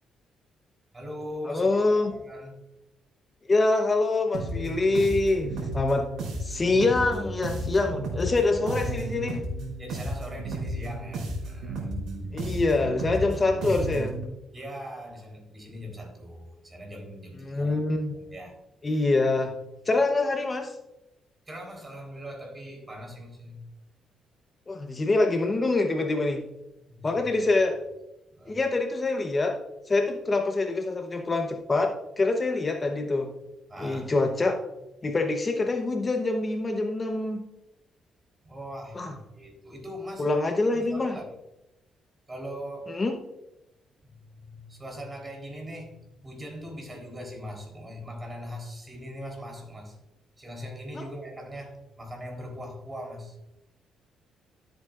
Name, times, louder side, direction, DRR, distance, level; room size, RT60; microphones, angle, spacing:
voice 1, 0.9-2.5 8.6-9.0 9.8-12.0 14.5-17.8 18.1-18.5 21.5-23.6 26.9-27.5 28.3-28.6 33.7-34.1 38.4-39.0 39.3-40.3 40.7-41.3 42.3-43.0 44.0-44.1 44.4-50.0 50.4-53.4, equal, 25° right, 1 dB, 3.7 m, -40 dB
voice 2, 1.5-2.1 3.5-6.1 6.4-9.4 12.3-14.2 17.4-18.1 18.8-19.5 19.8-20.7 24.7-26.4 27.0-27.8 28.5-29.6 29.9-33.3 33.8-34.6 35.0-37.5 38.9-39.1 40.2-41.2 42.9-43.2 50.9-51.0, left 2 dB, 30° left, 4 dB, 0.9 m, -25 dB
sound 1, 4.3-14.2, right 1 dB, 80° right, 3.5 m, -33 dB
13.0 x 7.8 x 2.5 m, 0.92 s
cardioid pair, 90°, 0 cm